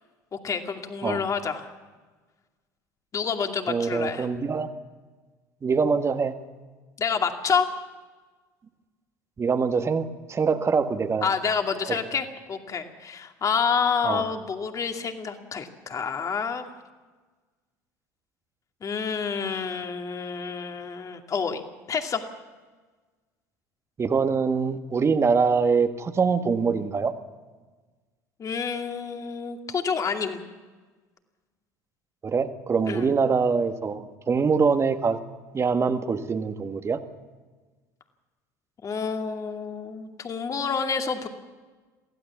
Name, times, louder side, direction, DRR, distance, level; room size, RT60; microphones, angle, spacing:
voice 1, 0.3-1.7 3.1-4.3 7.0-7.7 11.2-16.6 18.8-21.6 21.9-22.3 28.4-30.4 32.9-33.1 38.8-41.3, left 6 dB, 35° left, 5 dB, 2.4 m, -28 dB
voice 2, 3.7-4.7 5.6-6.3 9.4-11.3 11.9-12.0 14.0-14.2 24.0-27.1 32.2-35.2 35.5-37.0, right 5 dB, 30° right, 8 dB, 1.6 m, -24 dB
23.0 x 15.5 x 7.3 m, 1.3 s
hypercardioid pair, 70°, 9 cm